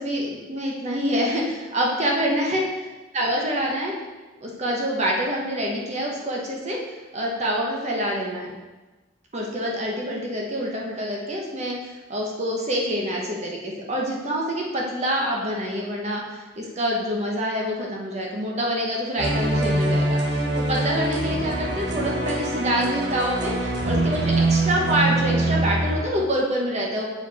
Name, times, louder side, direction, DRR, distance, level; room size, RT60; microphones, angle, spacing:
voice 1, 0.0-2.6 3.1-3.9 4.4-6.8 7.1-8.5 9.3-11.8 12.1-27.1, equal, 35° right, -2 dB, 1.0 m, -26 dB
sound 1, 19.2-26.0, right 2 dB, 65° right, 1.1 m, -24 dB
6.8 x 4.8 x 4.1 m, 1.2 s
head